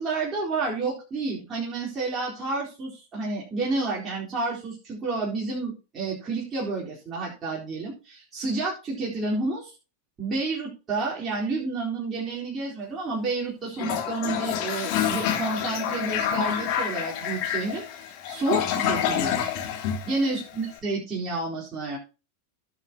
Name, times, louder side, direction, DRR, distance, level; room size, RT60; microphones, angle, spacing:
voice 1, 0.0-9.7 10.2-19.5 20.1-22.0, right 3 dB, 20° right, -5 dB, 4.2 m, -30 dB
Toilet flush, 13.7-20.7, left 9 dB, 45° left, 2.7 m, -28 dB
17.0 x 7.0 x 2.9 m, 0.32 s
figure-of-eight pair, 90°, 0 cm